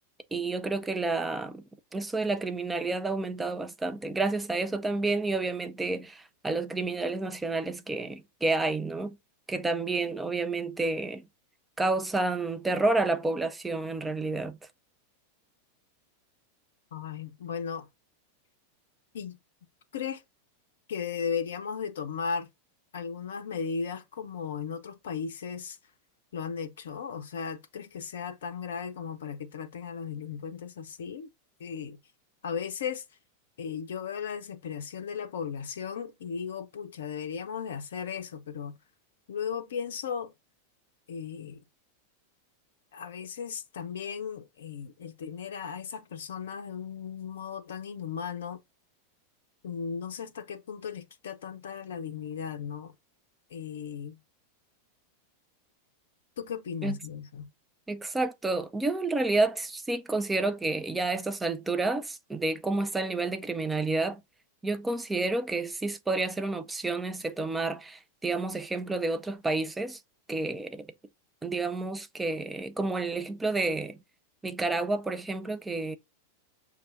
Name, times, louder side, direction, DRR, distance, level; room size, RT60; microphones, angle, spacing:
voice 1, 0.3-1.6 1.9-9.2 9.5-11.2 11.8-14.6 56.8-57.0 57.9-64.2 64.6-70.0 70.3-70.9 71.4-74.0 74.4-76.0, right 3 dB, 10° right, 0.5 m, -30 dB
voice 2, 16.9-17.9 19.1-19.4 19.9-20.2 20.9-22.5 22.9-25.8 26.3-31.3 31.6-32.0 32.4-33.0 33.6-38.7 39.3-40.3 41.1-41.6 42.9-48.6 49.6-52.9 53.5-54.2 56.4-57.5, left 6 dB, 60° left, 0.5 m, -36 dB
6.6 x 2.8 x 2.5 m
figure-of-eight pair, 90°, 0 cm